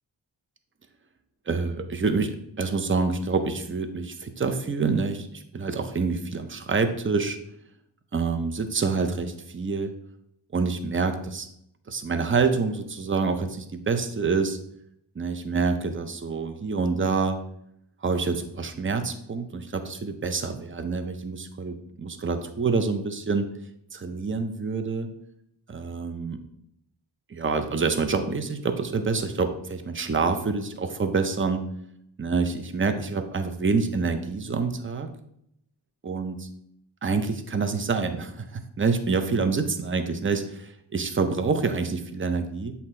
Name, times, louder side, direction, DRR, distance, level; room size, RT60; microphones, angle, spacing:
voice 1, 1.5-7.4 8.1-9.9 10.5-11.5 11.9-14.6 15.2-17.4 18.0-23.5 23.9-25.1 25.7-26.4 27.3-31.6 32.2-35.1 36.0-36.5 37.0-42.7, right 4 dB, 25° right, 8 dB, 0.6 m, -27 dB
8.0 x 2.8 x 4.3 m, 0.74 s
wide cardioid pair, 100°, 47 cm